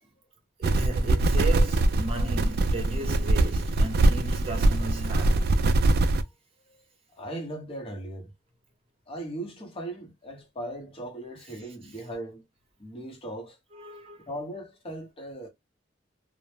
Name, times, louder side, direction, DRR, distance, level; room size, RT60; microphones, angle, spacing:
voice 1, 0.6-5.7 13.7-14.3, right 1 dB, 30° right, 0.8 m, -35 dB
sound 1, 0.6-6.2, right 2 dB, 55° right, 0.3 m, -23 dB
voice 2, 7.1-8.3 9.1-12.4 12.8-13.6 14.2-15.5, right 1 dB, 30° left, 0.8 m, -38 dB
2.0 x 2.0 x 3.1 m
head